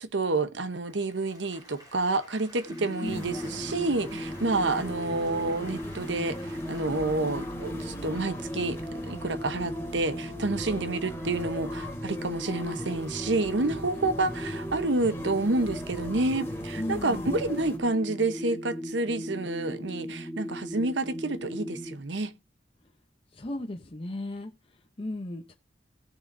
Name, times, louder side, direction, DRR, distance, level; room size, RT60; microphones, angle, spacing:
voice 1, 0.0-22.3, right 2 dB, 85° right, 1.0 m, -29 dB
Applause, 0.8-8.2, equal, 20° right, 3.3 m, -52 dB
sound 1, 2.7-21.9, equal, 5° right, 3.0 m, -37 dB
voice 2, 3.0-3.4 16.7-17.6 23.3-25.5, left 1 dB, 30° left, 0.8 m, -36 dB
sound 2, 3.0-17.8, left 1 dB, 15° left, 2.5 m, -40 dB
18.0 x 6.6 x 2.6 m
head